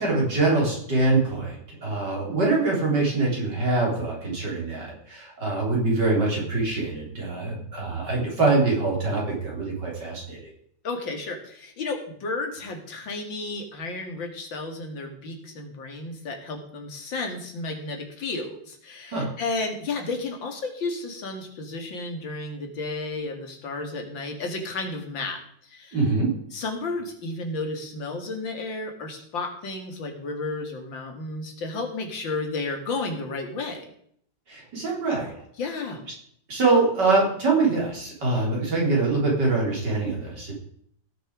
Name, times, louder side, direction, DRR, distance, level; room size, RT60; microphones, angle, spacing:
voice 1, 0.0-10.4 19.1-19.3 25.9-26.3 34.5-35.3 36.5-40.5, right 3 dB, 65° right, -3 dB, 4.6 m, -24 dB
voice 2, 10.8-25.4 25.6-26.0 26.5-33.9 35.6-36.0, left 3 dB, 90° left, 3 dB, 2.7 m, -32 dB
17.0 x 6.5 x 4.9 m, 0.66 s
omnidirectional pair, 2.0 m